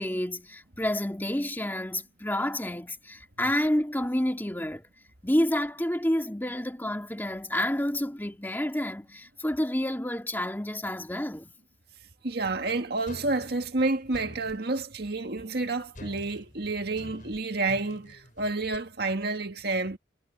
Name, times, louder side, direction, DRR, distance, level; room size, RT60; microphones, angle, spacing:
voice 1, 0.0-4.9 5.2-11.5, left 1 dB, 10° left, 2.1 m, -29 dB
voice 2, 12.2-20.0, right 3 dB, 60° right, 1.9 m, -29 dB
sound 1, 13.1-14.6 15.9-18.8, left 1 dB, 45° left, 6.5 m, -46 dB
head